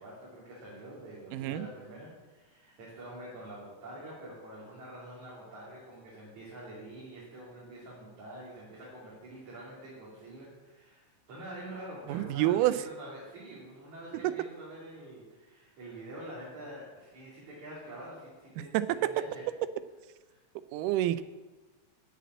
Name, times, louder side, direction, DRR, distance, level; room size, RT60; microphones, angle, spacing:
voice 1, 0.0-19.5 20.3-20.4, right 1 dB, 65° right, -7 dB, 4.3 m, -46 dB
voice 2, 1.3-1.7 12.1-12.8 14.2-14.3 18.7-18.9 20.7-21.2, right 14 dB, 85° right, 14 dB, 2.2 m, -27 dB
10.5 x 8.2 x 8.3 m, 1.2 s
omnidirectional pair, 3.7 m